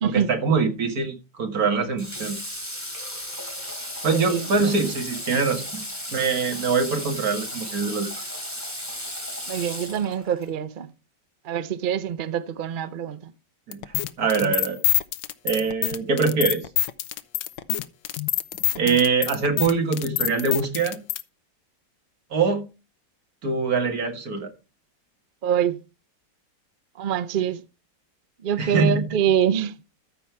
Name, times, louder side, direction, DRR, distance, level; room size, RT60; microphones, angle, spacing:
voice 1, 0.0-2.4 4.0-5.8 6.1-8.1 13.7-13.8 14.2-14.8 15.4-16.6 18.8-21.0 22.3-22.6 23.4-24.5 28.6-29.1, right 4 dB, 55° right, 2.2 m, -23 dB
Water / Water tap faucet, 2.0-10.5, left 1 dB, 10° left, 3.4 m, -35 dB
voice 2, 4.1-4.5 9.5-10.9 11.4-13.3 18.7-19.0 25.4-25.8 27.0-27.6 28.4-29.7, right 9 dB, 75° right, 0.4 m, -25 dB
sound 1, 13.7-21.2, left 12 dB, 90° left, 1.4 m, -26 dB
13.5 x 5.6 x 4.6 m
omnidirectional pair, 1.9 m